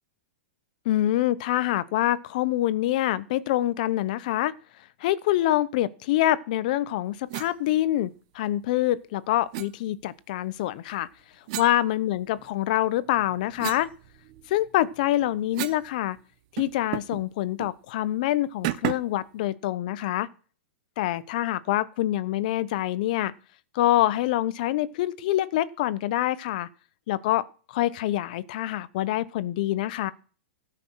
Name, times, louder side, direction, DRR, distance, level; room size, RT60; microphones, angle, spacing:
voice 1, 0.8-4.5 5.0-11.1 11.6-13.9 14.5-16.2 16.5-20.3 21.0-23.3 23.7-26.7 27.1-30.1, left 14 dB, 40° left, 0.8 m, -26 dB
sound 1, 7.3-7.5 9.5-9.7 11.5-12.5 13.0-15.9 16.2-16.3 16.6-17.2 17.6-17.8 18.6-19.2, right 15 dB, 35° right, 0.8 m, -34 dB
17.5 x 5.9 x 6.2 m
supercardioid pair, 165°, 7 cm